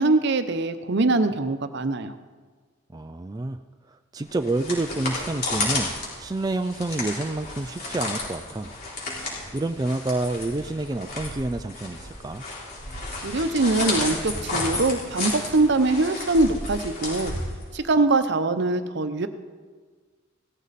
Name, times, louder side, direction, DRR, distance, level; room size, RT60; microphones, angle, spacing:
voice 1, 0.0-2.1 13.2-17.3 17.7-19.3, right 2 dB, 55° right, 10 dB, 0.8 m, -23 dB
voice 2, 2.9-3.6 3.9-5.9 6.2-8.7 9.5-12.4, right 2 dB, 20° right, 7 dB, 0.4 m, -28 dB
sound 1, 4.3-18.0, left 2 dB, 45° left, 4.1 m, -32 dB
17.5 x 14.5 x 4.2 m, 1.5 s
head